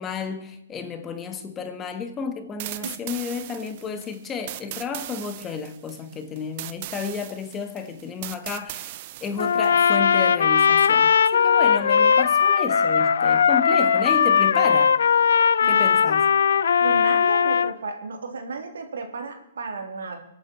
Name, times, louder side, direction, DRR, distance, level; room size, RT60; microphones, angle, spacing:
voice 1, 0.0-15.0 15.7-16.3, left 5 dB, 15° left, 1.4 m, -32 dB
sound 1, 2.6-9.7, right 15 dB, 40° right, 0.7 m, -38 dB
Trumpet, 9.4-17.7, left 7 dB, 75° left, 0.5 m, -19 dB
voice 2, 15.6-16.0 16.8-20.2, right 4 dB, 85° right, 3.2 m, -34 dB
23.5 x 9.0 x 4.4 m
hypercardioid pair, 145°, 0 cm